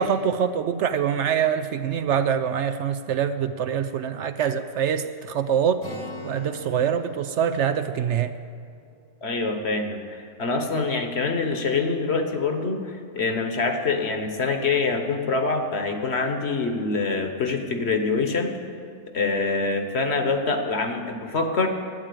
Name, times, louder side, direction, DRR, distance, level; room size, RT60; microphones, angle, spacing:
voice 1, 0.0-5.8 6.2-8.3, right 8 dB, 65° right, 10 dB, 0.8 m, -24 dB
Acoustic guitar, 5.8-9.5, left 1 dB, 90° left, 3.0 m, -42 dB
voice 2, 9.2-18.6 19.1-21.7, left 4 dB, 55° left, 5 dB, 1.4 m, -25 dB
12.5 x 8.9 x 8.4 m, 2.3 s
omnidirectional pair, 1.4 m